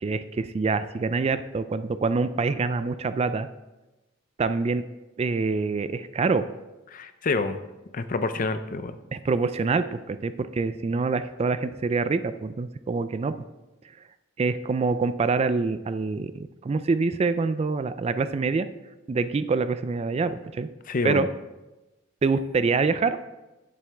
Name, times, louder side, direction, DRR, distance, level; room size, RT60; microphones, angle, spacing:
voice 1, 0.0-3.5 4.4-4.8 5.2-6.5 9.1-13.3 14.4-18.7 19.1-20.7 21.0-21.3 22.2-23.2, right 4 dB, 30° right, 12 dB, 0.3 m, -25 dB
voice 2, 6.9-7.6 7.9-8.9 20.9-21.2, left 3 dB, 45° left, 10 dB, 0.6 m, -27 dB
10.0 x 7.6 x 3.4 m, 1.0 s
head